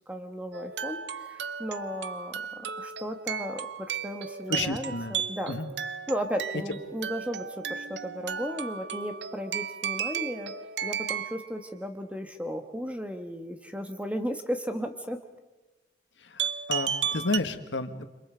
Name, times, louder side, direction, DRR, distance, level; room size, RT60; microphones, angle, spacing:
voice 1, 0.1-5.6 6.1-10.5 10.8-15.2, equal, 5° right, 6 dB, 1.5 m, -35 dB
sound 1, 0.5-11.5 16.4-17.4, right 7 dB, 75° right, 0.7 m, -34 dB
voice 2, 4.5-5.1 5.5-5.7 16.2-18.0, left 2 dB, 90° left, 9 dB, 1.6 m, -31 dB
29.5 x 26.5 x 5.1 m, 1.1 s
head